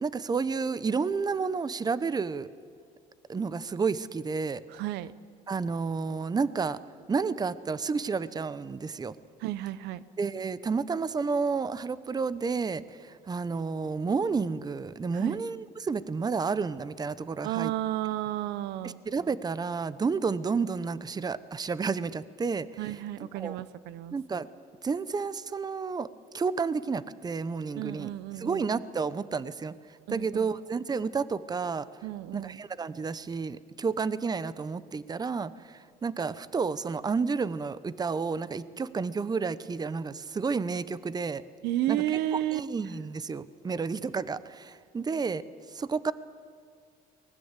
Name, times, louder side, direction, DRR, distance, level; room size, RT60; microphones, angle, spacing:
voice 1, 0.0-2.5 3.3-4.6 5.5-6.8 7.1-9.1 10.2-17.7 18.8-23.6 24.1-24.5 24.8-26.1 26.3-28.1 28.4-29.8 30.1-31.9 32.3-41.4 41.9-42.0 42.3-45.4 45.7-46.1, right 5 dB, 25° right, 16 dB, 0.8 m, -31 dB
voice 2, 4.7-5.1 9.4-10.0 15.1-15.4 17.4-19.0 22.8-24.2 27.8-28.7 30.1-30.5 32.0-32.6 41.6-42.6, right 14 dB, 85° right, 16 dB, 0.8 m, -32 dB
24.0 x 19.5 x 8.2 m, 2.2 s
cardioid pair, 110°, 17 cm